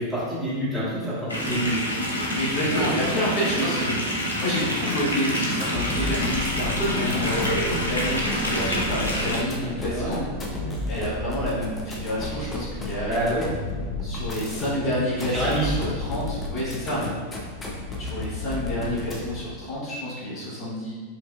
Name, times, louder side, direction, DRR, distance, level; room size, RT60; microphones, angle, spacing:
voice 1, 0.0-2.0 2.7-2.9 3.6-3.7 7.0-7.5 9.6-10.3 13.0-13.5 14.7-14.9 15.2-16.0 17.0-17.1, right 1 dB, 10° right, -10 dB, 1.4 m, -28 dB
sound 1, 1.3-9.4, equal, 80° left, 0.6 m, -27 dB
voice 2, 2.3-10.2 10.9-13.2 14.0-17.0 18.0-21.0, equal, 35° left, -8 dB, 1.3 m, -29 dB
sound 2, 5.5-19.5, left 2 dB, 20° left, 0.6 m, -32 dB
4.7 x 2.6 x 2.4 m, 1.4 s
figure-of-eight pair, 90°, 0 cm